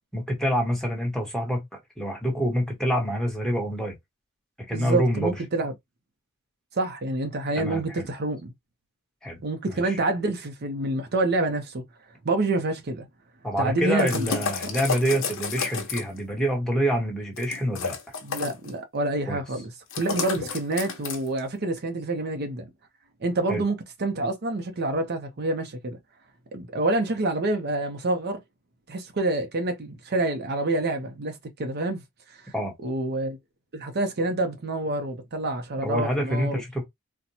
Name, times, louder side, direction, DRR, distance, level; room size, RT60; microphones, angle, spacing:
voice 1, 0.1-1.6 2.0-3.9 4.7-5.3 7.5-8.1 9.2-9.4 9.7-10.0 13.4-18.0 19.3-19.4 20.4-20.5 23.5-23.6 32.5-32.7 35.8-36.9, equal, 5° left, 1.1 m, -26 dB
voice 2, 4.7-5.7 6.7-8.5 9.4-11.8 12.2-13.1 13.6-14.3 18.2-22.7 23.2-26.0 26.5-28.4 28.9-32.5 32.8-33.4 33.7-36.6, right 2 dB, 50° right, 0.6 m, -27 dB
sound 1, 14.0-16.2 17.4-18.7 19.9-21.4, left 5 dB, 60° left, 0.9 m, -31 dB
4.2 x 2.2 x 2.7 m
head